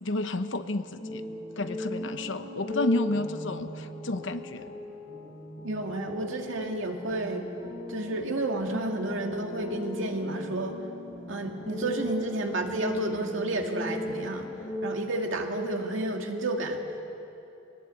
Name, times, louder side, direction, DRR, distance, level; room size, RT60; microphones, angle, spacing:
voice 1, 0.0-1.2 1.6-4.6, left 2 dB, 65° left, 10 dB, 1.0 m, -31 dB
sound 1, 1.0-14.9, left 1 dB, 50° left, 5.1 m, -38 dB
voice 2, 5.6-7.5 7.9-10.8 11.3-14.5 14.8-16.8, right 2 dB, 75° right, 2 dB, 2.2 m, -31 dB
22.0 x 19.0 x 8.3 m, 2.9 s
head